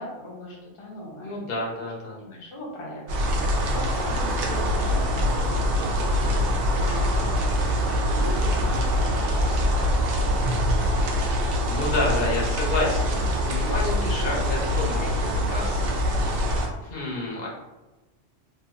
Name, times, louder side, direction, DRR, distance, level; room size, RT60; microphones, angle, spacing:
voice 1, 0.0-1.4 2.2-9.9, left 1 dB, 30° left, -4 dB, 0.7 m, -39 dB
voice 2, 1.2-2.2 11.6-15.9 16.8-17.5, left 2 dB, 55° left, -4 dB, 1.0 m, -29 dB
sound 1, 3.1-16.7, equal, 65° right, 0.7 m, -24 dB
3.0 x 2.5 x 2.5 m, 1.1 s
omnidirectional pair, 1.2 m